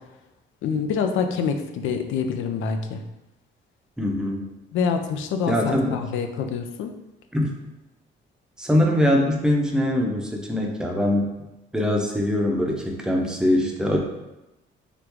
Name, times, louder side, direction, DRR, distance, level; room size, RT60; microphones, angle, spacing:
voice 1, 0.6-3.0 4.7-6.9, left 6 dB, 80° left, 7 dB, 0.4 m, -26 dB
voice 2, 4.0-4.5 5.5-6.0 7.3-7.5 8.6-11.3 11.7-14.0, left 1 dB, 5° right, 0 dB, 0.6 m, -22 dB
3.4 x 2.4 x 3.0 m, 0.98 s
cardioid pair, 90°, 20 cm